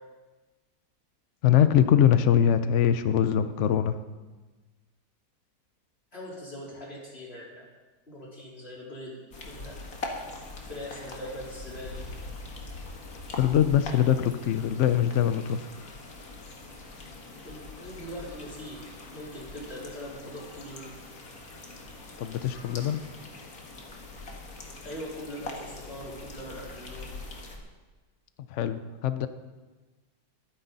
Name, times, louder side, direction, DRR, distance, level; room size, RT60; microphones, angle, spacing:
voice 1, 1.4-4.0 13.3-15.7 22.2-23.0 28.5-29.3, left 9 dB, 80° left, 11 dB, 0.6 m, -23 dB
voice 2, 6.1-7.7 8.1-9.2 9.4-9.7 10.7-12.0 17.4-18.8 19.1-20.9 24.8-27.1, equal, 30° left, -5 dB, 4.1 m, -41 dB
sound 1, 9.3-27.6, left 2 dB, 50° left, 2.1 m, -42 dB
21.5 x 10.0 x 4.0 m, 1.3 s
omnidirectional pair, 2.0 m